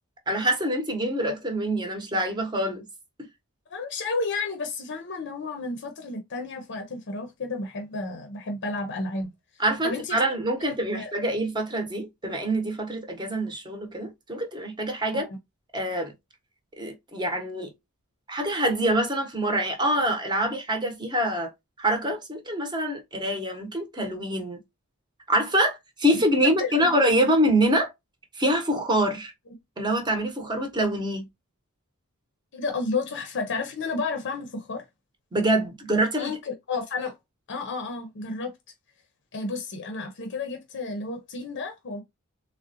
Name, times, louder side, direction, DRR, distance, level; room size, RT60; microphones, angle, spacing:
voice 1, 0.3-2.9 9.6-15.3 15.7-16.1 16.8-17.7 18.3-21.5 21.8-24.6 25.3-27.9 28.3-29.3 29.8-31.3 35.3-36.3, right 1 dB, 20° right, 0.8 m, -25 dB
voice 2, 3.7-10.3 10.9-11.1 15.1-15.4 26.1-26.9 32.5-34.8 36.2-37.2 37.5-38.5 39.3-42.0, left 3 dB, 55° left, 0.6 m, -32 dB
3.6 x 2.1 x 2.6 m
head